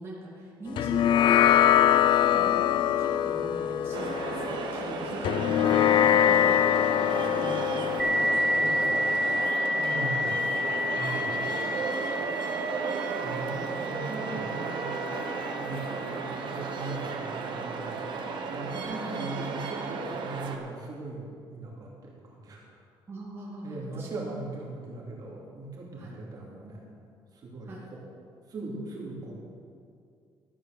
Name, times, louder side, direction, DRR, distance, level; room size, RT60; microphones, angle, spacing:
voice 1, 0.0-6.1 6.8-9.2 9.7-10.5 19.0-19.2 23.1-24.1 26.0-26.2 27.6-27.9, right 1 dB, 25° right, -6 dB, 2.5 m, -41 dB
sound 1, 0.8-9.5, left 11 dB, 65° left, 0.3 m, -24 dB
sound 2, 3.9-20.6, right 5 dB, 60° right, 1.3 m, -34 dB
voice 2, 5.6-6.6 8.5-9.0 9.9-10.3 10.9-11.4 13.2-22.6 23.6-26.9 27.3-28.0 28.5-29.3, right 2 dB, 45° right, -3 dB, 2.7 m, -40 dB
sound 3, 8.0-17.2, left 1 dB, 5° right, 1.0 m, -30 dB
13.0 x 8.8 x 6.6 m, 2.4 s
cardioid pair, 135°, 9 cm